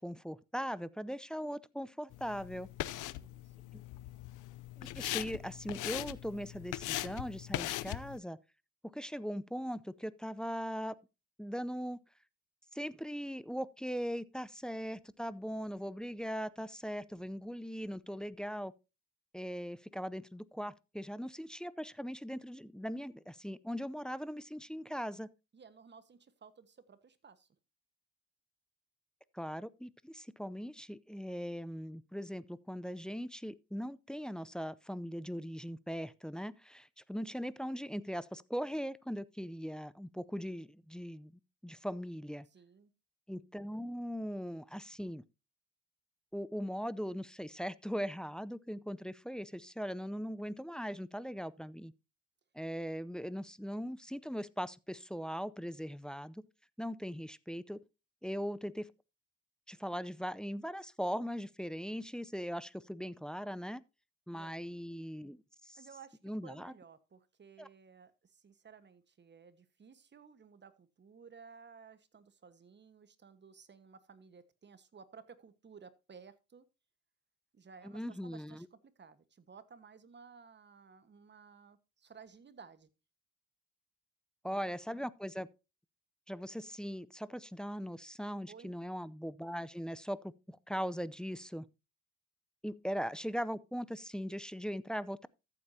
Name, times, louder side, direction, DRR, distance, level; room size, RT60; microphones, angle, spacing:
voice 1, 0.0-2.7 3.7-3.8 4.8-8.4 8.8-10.9 11.4-12.0 12.7-18.7 19.3-25.3 29.3-41.3 41.6-42.5 43.3-45.2 46.3-51.9 52.5-56.5 56.8-57.8 58.2-58.9 59.7-63.8 64.3-65.8 66.2-66.7 67.6-67.7 77.8-78.7 84.4-85.5 86.3-91.7 92.6-95.3, equal, 5° left, 0.5 m, -40 dB
sound 1, 2.1-8.2, left 16 dB, 90° left, 0.6 m, -40 dB
voice 2, 2.6-3.7 25.5-27.5 42.5-42.9 64.3-64.7 65.7-76.7 77.5-82.9 84.4-85.1 88.5-88.7, right 5 dB, 35° right, 1.4 m, -57 dB
14.0 x 8.3 x 2.8 m
cardioid pair, 90°, 30 cm